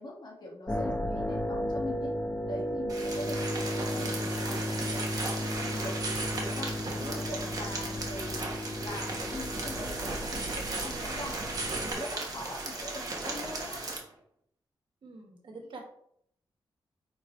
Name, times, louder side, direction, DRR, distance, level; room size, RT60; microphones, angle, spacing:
voice 1, 0.0-0.9 1.3-2.2 2.5-6.0 6.3-8.4 8.6-11.5 11.8-13.8, left 1 dB, 55° left, -1 dB, 2.0 m, -42 dB
sound 1, 0.7-11.9, left 1 dB, 25° left, 1.1 m, -34 dB
voice 2, 0.8-1.3 15.0-15.8, right 2 dB, 70° right, 1 dB, 1.8 m, -47 dB
sound 2, 2.9-14.0, right 3 dB, 40° right, 1.5 m, -36 dB
8.9 x 4.4 x 3.3 m, 0.70 s
wide cardioid pair, 165°, 9 cm